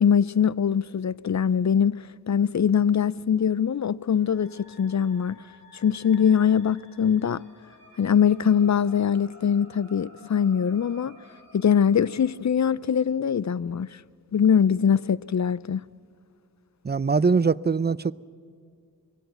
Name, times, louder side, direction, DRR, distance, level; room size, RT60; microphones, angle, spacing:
voice 1, 0.0-2.0 2.3-5.4 5.7-7.4 8.0-11.2 11.5-13.9 14.3-15.8, left 7 dB, 50° left, 0.5 m, -22 dB
sound 1, 4.1-12.3, left 1 dB, 65° left, 7.9 m, -53 dB
voice 2, 16.8-18.1, right 5 dB, 30° right, 0.4 m, -22 dB
22.0 x 17.0 x 7.9 m
wide cardioid pair, 45°, 38 cm